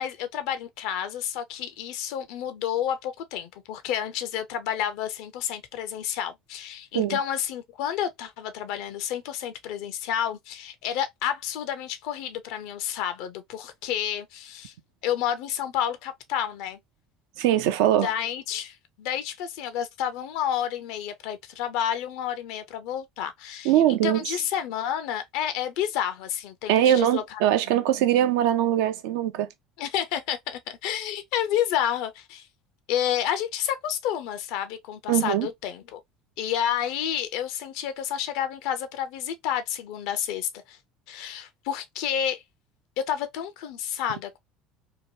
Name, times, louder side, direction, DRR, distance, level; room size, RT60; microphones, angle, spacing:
voice 1, 0.0-14.7 15.0-16.8 18.0-27.4 29.8-32.5 32.9-36.0 36.4-40.8 41.1-42.4 43.1-44.4, left 10 dB, 70° left, 0.6 m, -30 dB
voice 2, 17.4-18.1 23.6-24.2 26.7-29.5 35.1-35.5, right 12 dB, 80° right, 0.5 m, -22 dB
2.9 x 2.2 x 2.6 m
supercardioid pair, 85°, 0 cm